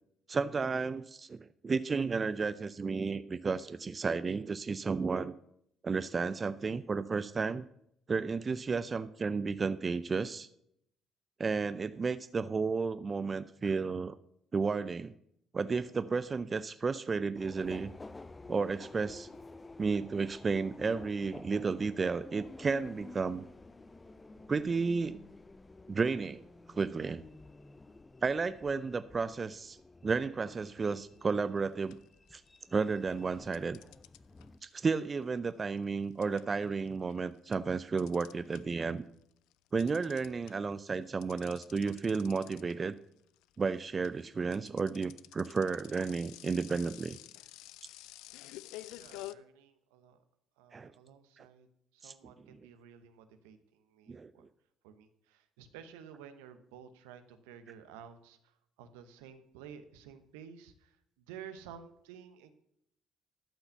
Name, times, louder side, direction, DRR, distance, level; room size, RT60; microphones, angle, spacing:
voice 1, 0.3-5.3 5.8-7.7 8.1-10.5 11.4-14.2 14.5-15.1 15.5-17.9 18.5-19.3 19.8-23.4 24.5-25.2 25.9-26.4 26.8-27.2 28.2-29.8 30.0-32.0 32.3-32.4 32.7-33.8 34.6-39.1 39.7-43.0 43.6-47.2 50.7-50.9 51.4-51.5 52.0-52.3 54.1-54.3, right 4 dB, 35° right, 14 dB, 0.4 m, -32 dB
Subway metro underground, 17.4-34.6, left 2 dB, 25° left, 0.6 m, -52 dB
sound 1, 31.3-31.6 31.9-32.8 33.5-38.9 39.2-49.3, left 16 dB, 75° left, 0.3 m, -50 dB
voice 2, 49.0-50.2 50.6-51.7 51.9-54.4 54.8-58.4 58.8-60.9 61.3-62.5, right 8 dB, 85° right, 9 dB, 0.9 m, -52 dB
12.0 x 5.7 x 6.8 m, 0.74 s
hypercardioid pair, 55°, 0 cm